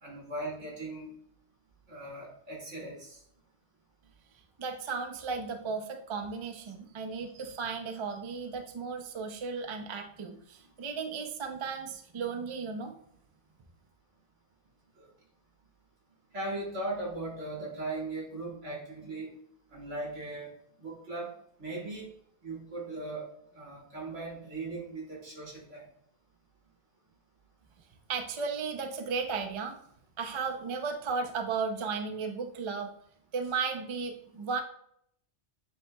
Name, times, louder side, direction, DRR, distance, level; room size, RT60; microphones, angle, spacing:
voice 1, 0.0-1.1 1.9-3.2 16.3-19.3 19.7-20.5 20.8-21.3 21.6-22.1 22.4-23.3 23.5-25.8, right 2 dB, 90° right, -4 dB, 2.2 m, -38 dB
voice 2, 4.6-12.9 28.1-29.8 30.2-32.9 33.3-34.6, right 5 dB, 40° right, 5 dB, 0.4 m, -35 dB
8.2 x 2.9 x 2.2 m, 0.69 s
omnidirectional pair, 1.2 m